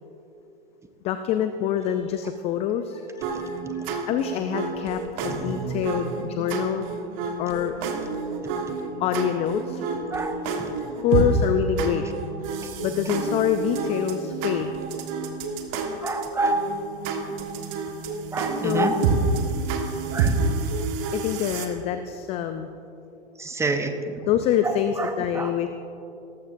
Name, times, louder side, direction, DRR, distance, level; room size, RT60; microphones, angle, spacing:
voice 1, 1.0-6.8 7.4-7.7 9.0-9.9 11.0-12.1 12.8-14.7 18.6-19.2 21.1-22.7 24.3-25.7, left 9 dB, 20° left, 9 dB, 0.3 m, -26 dB
sound 1, 3.2-21.7, right 4 dB, 45° right, 1.5 m, -29 dB
voice 2, 3.3-3.7 5.3-5.7 10.1-10.7 16.0-16.6 18.3-19.0 20.1-20.4 23.4-24.3 24.6-25.5, right 3 dB, 10° right, 7 dB, 0.8 m, -28 dB
17.5 x 14.0 x 2.6 m, 2.8 s
hypercardioid pair, 110°, 32 cm